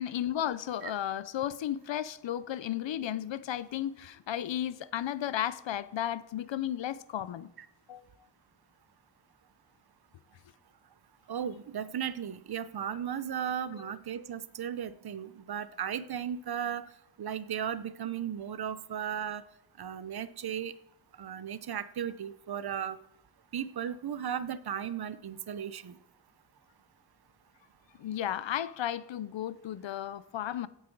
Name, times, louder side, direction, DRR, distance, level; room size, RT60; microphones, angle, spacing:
voice 1, 0.0-7.5 7.9-8.0 13.7-13.9 28.0-30.7, left 11 dB, 90° left, 0.7 m, -34 dB
voice 2, 11.3-16.8 17.2-19.4 19.8-20.7 21.2-23.0 23.5-26.0, right 9 dB, 60° right, 0.7 m, -36 dB
16.0 x 8.9 x 4.6 m
wide cardioid pair, 180°, 43 cm